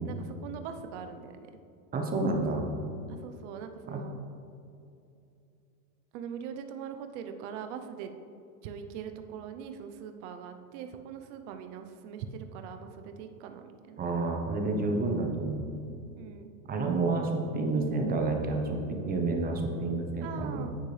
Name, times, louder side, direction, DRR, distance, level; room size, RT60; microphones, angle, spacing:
voice 1, 0.0-1.5 2.3-2.5 3.2-4.2 6.1-8.1 8.6-14.0 16.2-16.5 20.2-20.8, right 7 dB, 50° right, 7 dB, 0.8 m, -42 dB
voice 2, 1.9-2.7 3.9-4.0 14.0-15.7 16.7-20.7, right 3 dB, 20° right, 3 dB, 1.0 m, -29 dB
10.5 x 8.2 x 3.3 m, 2.6 s
supercardioid pair, 145°, 44 cm